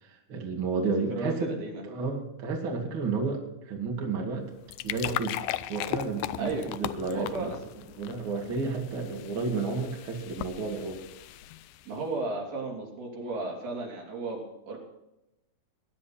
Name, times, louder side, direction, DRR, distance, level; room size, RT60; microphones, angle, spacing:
voice 1, 0.0-1.5 1.8-4.5 4.8-5.4 5.7-7.5 8.0-11.0, right 4 dB, 40° right, 0 dB, 2.4 m, -31 dB
voice 2, 1.1-1.8 6.4-6.7 7.1-7.6 11.9-14.8, right 3 dB, 65° right, -2 dB, 5.1 m, -34 dB
sound 1, 4.4-12.0, left 15 dB, 85° left, 2.1 m, -38 dB
20.0 x 10.5 x 4.2 m, 0.93 s
omnidirectional pair, 4.7 m